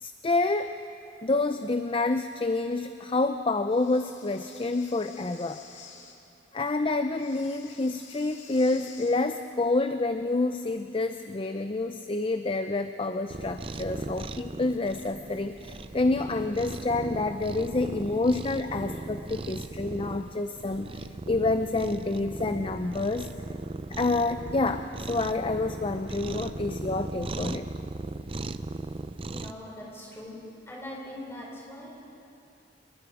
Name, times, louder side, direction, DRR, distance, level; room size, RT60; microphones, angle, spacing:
voice 1, 0.0-0.7 1.2-5.6 6.5-23.3 23.9-27.7, left 2 dB, 30° left, 8 dB, 0.5 m, -28 dB
Breathing, 3.7-6.2 7.1-9.2, left 5 dB, 85° left, 2.5 m, -50 dB
Cat, 13.3-29.5, right 2 dB, 30° right, 0.5 m, -38 dB
voice 2, 29.3-30.4 30.7-32.0, left 1 dB, 15° left, -5 dB, 5.9 m, -41 dB
27.5 x 21.5 x 5.0 m, 2.7 s
head